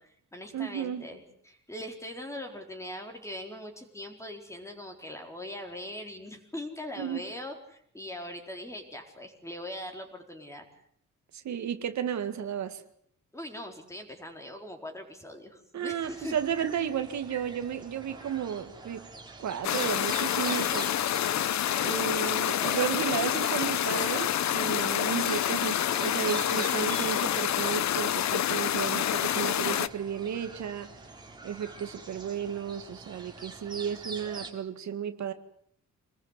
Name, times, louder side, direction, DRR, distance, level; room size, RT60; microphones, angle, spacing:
voice 1, 0.0-10.6 13.3-16.4, left 1 dB, 10° left, 4.2 m, -41 dB
voice 2, 0.5-1.0 7.0-7.2 11.3-12.8 15.7-19.0 19.4-20.9 21.8-30.9 31.4-35.3, right 8 dB, 65° right, 2.0 m, -33 dB
sound 1, 16.0-34.5, right 3 dB, 15° right, 3.6 m, -45 dB
sound 2, 19.6-29.9, left 11 dB, 65° left, 1.0 m, -28 dB
27.0 x 20.5 x 8.2 m
wide cardioid pair, 175°, 30 cm